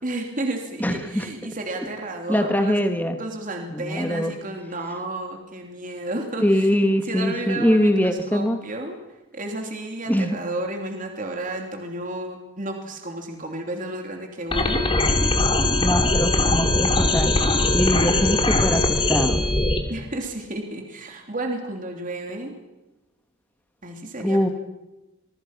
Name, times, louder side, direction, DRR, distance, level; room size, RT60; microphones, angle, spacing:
voice 1, 0.0-2.8 3.2-6.7 7.1-9.0 9.3-14.9 19.9-22.5 23.8-24.5, right 2 dB, 35° right, 3 dB, 3.1 m, -32 dB
voice 2, 0.8-1.3 2.3-3.2 3.7-4.3 6.4-8.6 10.1-10.4 15.8-17.4 17.7-19.5 24.2-24.5, equal, 10° left, 7 dB, 1.7 m, -22 dB
sound 1, 14.5-19.8, left 2 dB, 25° left, 2.6 m, -21 dB
26.0 x 23.0 x 6.0 m, 1.0 s
head